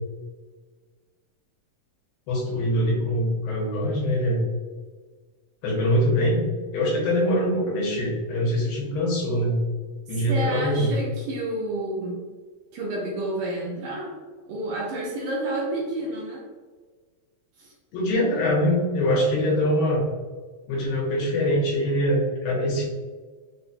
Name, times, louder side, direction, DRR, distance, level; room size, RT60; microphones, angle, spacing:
voice 1, 2.3-4.4 5.6-6.5 6.7-9.6 10.1-10.9 17.9-20.0 20.7-22.8, equal, 80° left, -4 dB, 2.8 m, -23 dB
voice 2, 10.1-12.2 12.7-14.2 14.5-16.5 17.6-17.7, right 2 dB, 75° right, -4 dB, 2.0 m, -30 dB
5.8 x 2.2 x 2.6 m, 1.4 s
omnidirectional pair, 4.1 m